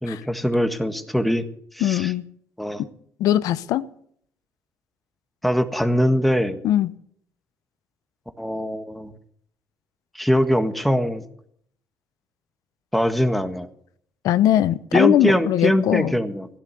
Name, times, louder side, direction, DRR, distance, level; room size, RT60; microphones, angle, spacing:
voice 1, 0.0-1.4 1.7-2.1 2.6-2.8 5.4-6.6 8.4-9.1 10.1-11.2 12.9-13.7 14.9-16.5, equal, ahead, 1.6 m, -22 dB
voice 2, 1.8-2.2 3.2-3.9 6.6-6.9 14.2-16.1, left 12 dB, 80° left, 0.8 m, -20 dB
16.5 x 11.5 x 6.9 m
cardioid pair, 90°, 6 cm